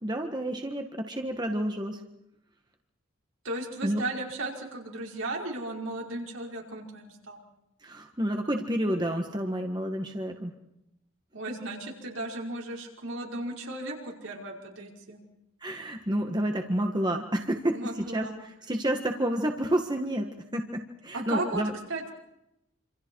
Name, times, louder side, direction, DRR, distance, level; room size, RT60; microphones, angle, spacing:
voice 1, 0.0-2.0 3.8-4.0 7.8-10.5 15.6-21.7, right 1 dB, 20° right, 3 dB, 1.6 m, -30 dB
voice 2, 3.4-7.4 11.3-15.2 17.7-18.4 21.1-21.6 21.9-22.1, right 2 dB, 75° right, -1 dB, 5.3 m, -35 dB
27.5 x 27.0 x 4.7 m, 0.85 s
head